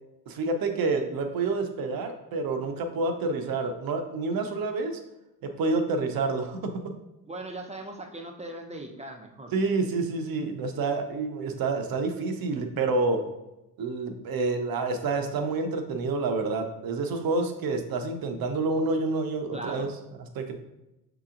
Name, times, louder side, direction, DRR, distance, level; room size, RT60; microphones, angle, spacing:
voice 1, 0.3-5.0 5.4-6.7 9.5-13.2 13.8-19.9 20.2-20.6, right 3 dB, 50° right, 5 dB, 0.9 m, -28 dB
voice 2, 7.3-9.5 19.5-19.9, right 2 dB, 15° right, 3 dB, 0.8 m, -39 dB
6.3 x 2.9 x 2.5 m, 0.94 s
hypercardioid pair, 60°, 46 cm